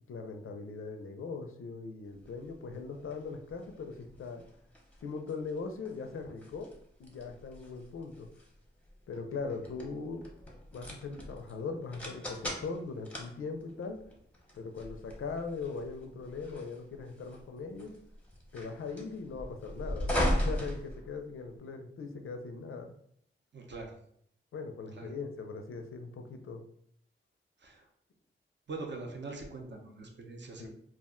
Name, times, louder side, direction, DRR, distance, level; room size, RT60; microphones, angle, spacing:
voice 1, 0.1-4.4 5.0-6.7 7.0-8.3 9.1-10.2 10.7-14.0 14.5-17.9 18.5-22.9 24.5-26.7 30.6-30.7, left 4 dB, 85° left, 5 dB, 0.4 m, -40 dB
sound 1, 2.2-21.6, equal, 5° left, 0.6 m, -39 dB
voice 2, 23.5-23.9 24.9-25.1 27.6-27.9 28.7-30.7, right 3 dB, 60° right, 2 dB, 0.6 m, -42 dB
2.4 x 2.1 x 3.6 m, 0.67 s
wide cardioid pair, 90°, 21 cm